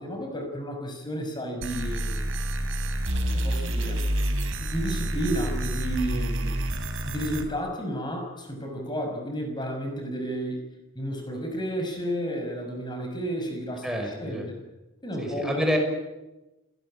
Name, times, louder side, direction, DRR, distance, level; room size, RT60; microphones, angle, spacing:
voice 1, 0.0-2.2 3.3-4.0 4.6-6.5 7.1-10.6 11.0-14.5 15.0-15.6, equal, 20° left, 4 dB, 5.9 m, -32 dB
sound 1, 1.6-7.4, right 1 dB, 65° right, 3.7 m, -28 dB
voice 2, 13.8-14.4 15.2-15.8, equal, ahead, 2 dB, 5.7 m, -28 dB
27.5 x 18.0 x 8.8 m, 1.0 s
head